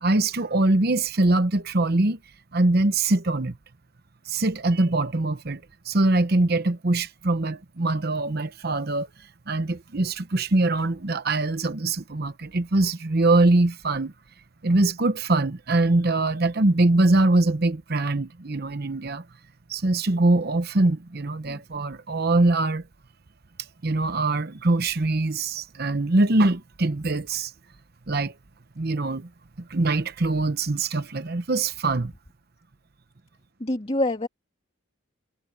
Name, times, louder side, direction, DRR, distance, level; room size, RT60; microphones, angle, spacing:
voice 1, 0.0-2.2 2.5-3.5 4.3-9.1 9.5-14.1 14.6-19.2 19.7-22.8 23.8-27.5 28.1-28.3 28.8-29.3 29.6-32.1, right 2 dB, 50° right, 0.9 m, -23 dB
voice 2, 33.6-34.3, left 1 dB, 30° left, 2.3 m, -26 dB
head